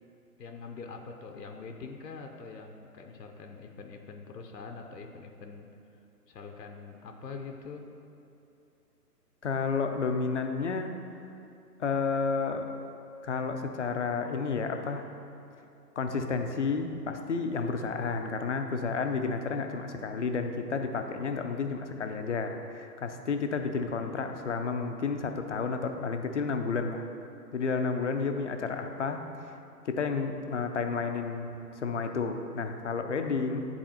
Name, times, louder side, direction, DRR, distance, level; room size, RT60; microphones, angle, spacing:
voice 1, 0.4-5.7 6.3-7.9, left 4 dB, 85° left, 3 dB, 0.7 m, -44 dB
voice 2, 9.4-10.9 11.8-12.7 13.2-15.0 16.0-27.1 27.5-29.2 29.9-31.5 31.8-33.7, left 4 dB, 50° left, 6 dB, 0.5 m, -31 dB
10.0 x 4.1 x 2.8 m, 2.7 s
hypercardioid pair, 155°, 48 cm